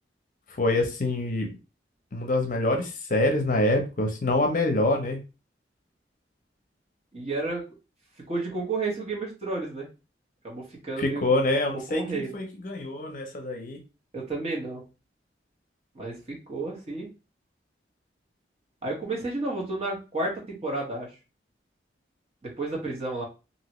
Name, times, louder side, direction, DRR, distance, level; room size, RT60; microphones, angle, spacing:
voice 1, 0.6-1.5 2.1-5.2 11.0-13.8, left 2 dB, 45° left, 3 dB, 0.6 m, -25 dB
voice 2, 7.1-7.6 8.3-9.9 10.4-11.2 11.7-12.3 14.1-14.8 15.9-17.1 18.8-21.1 22.4-23.2, right 2 dB, 35° right, -2 dB, 1.1 m, -31 dB
2.9 x 2.7 x 3.0 m, 0.30 s
head